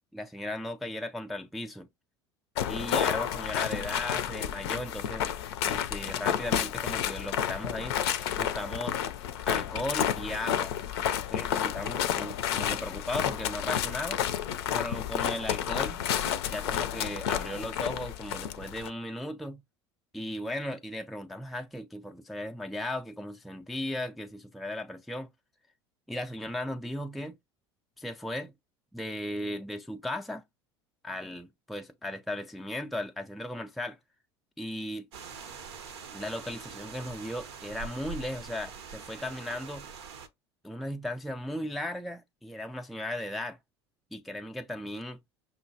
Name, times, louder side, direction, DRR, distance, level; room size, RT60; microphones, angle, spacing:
voice 1, 0.1-1.9 2.7-5.3 5.7-8.0 8.4-9.0 9.5-10.7 11.1-14.2 14.7-16.0 16.5-19.6 20.1-25.3 26.1-27.4 28.0-28.5 28.9-30.4 31.0-34.0 34.6-35.1 36.1-39.9 40.6-43.6 44.1-45.2, left 1 dB, ahead, 0.3 m, -36 dB
sound 1, 2.6-18.9, left 10 dB, 70° left, 0.5 m, -31 dB
sound 2, 35.1-40.3, right 5 dB, 75° right, 0.7 m, -44 dB
5.6 x 2.2 x 2.6 m
hypercardioid pair, 75°, 14 cm